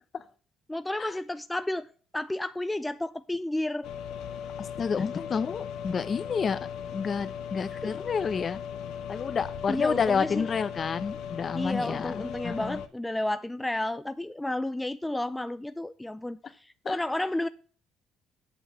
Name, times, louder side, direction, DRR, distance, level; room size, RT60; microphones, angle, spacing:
voice 1, 0.7-1.9 2.1-3.9 9.7-10.5 11.5-16.4 16.9-17.5, left 1 dB, 10° left, 0.4 m, -31 dB
sound 1, 3.8-12.9, left 8 dB, 80° left, 1.0 m, -38 dB
voice 2, 4.6-8.6 9.1-12.8 16.4-16.5 16.8-17.0, left 6 dB, 45° left, 0.8 m, -30 dB
8.1 x 5.9 x 7.3 m
supercardioid pair, 85°, 0 cm